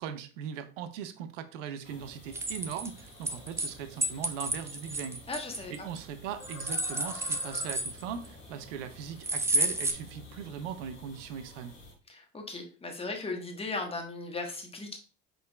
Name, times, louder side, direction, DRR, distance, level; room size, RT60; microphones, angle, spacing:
voice 1, 0.0-5.2 5.7-11.7, right 8 dB, 70° right, 0.7 m, -39 dB
sound 1, 1.8-11.9, left 2 dB, 90° left, 1.7 m, -50 dB
sound 2, 2.3-3.7 4.0-6.0 6.4-8.3 9.2-9.9, right 2 dB, 5° right, 0.4 m, -31 dB
voice 2, 5.3-5.9 12.1-15.0, left 3 dB, 15° left, 1.2 m, -37 dB
5.0 x 3.9 x 2.3 m
hypercardioid pair, 75°, 38 cm